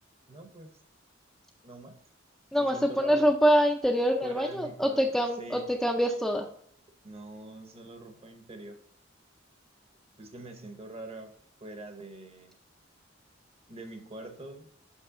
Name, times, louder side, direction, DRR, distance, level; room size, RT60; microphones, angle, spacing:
voice 1, 0.3-0.7 1.6-1.9 2.6-3.3 4.2-5.0 5.4-5.7 7.0-8.8 10.2-11.3 11.6-12.5 13.7-14.7, right 2 dB, 30° right, 7 dB, 0.8 m, -44 dB
voice 2, 2.5-6.5, equal, ahead, 1 dB, 0.4 m, -25 dB
5.9 x 5.4 x 3.7 m, 0.63 s
head